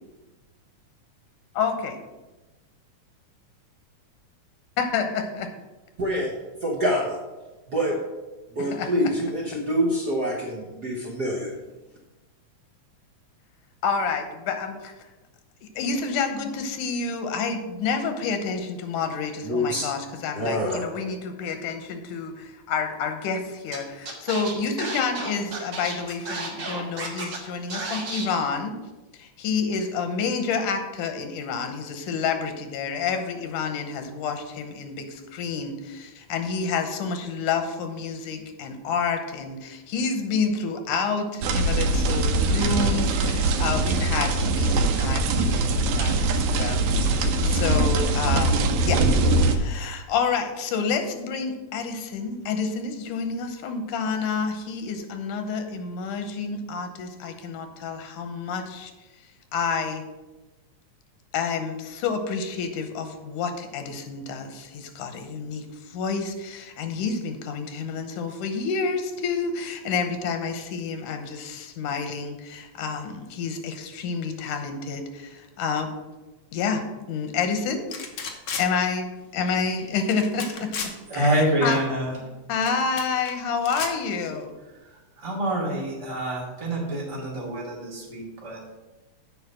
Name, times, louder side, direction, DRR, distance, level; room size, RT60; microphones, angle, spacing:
voice 1, 1.5-2.0 4.8-5.5 8.6-8.9 13.8-15.1 15.6-28.8 29.1-58.9 59.5-60.0 61.3-75.9 76.5-77.8 78.6-79.1 79.3-81.8 82.5-84.6, left 5 dB, 90° left, 6 dB, 2.5 m, -29 dB
voice 2, 6.0-6.3 6.6-7.2 7.7-8.0 8.5-11.5 19.4-19.8 20.3-20.8, equal, 60° right, -3 dB, 1.0 m, -25 dB
Scratching (performance technique), 23.7-23.8 24.0-27.4 27.7-28.2, right 3 dB, 45° right, 1.8 m, -33 dB
sound 1, 41.4-49.6, right 2 dB, 80° right, 2.1 m, -22 dB
sound 2, 77.9-78.7 80.1-80.9 82.6-83.3 83.6-83.9, left 6 dB, 65° left, 1.3 m, -33 dB
voice 3, 81.1-82.2 84.9-88.7, right 1 dB, 10° right, -4 dB, 1.7 m, -27 dB
8.0 x 5.3 x 6.2 m, 1.1 s
omnidirectional pair, 3.5 m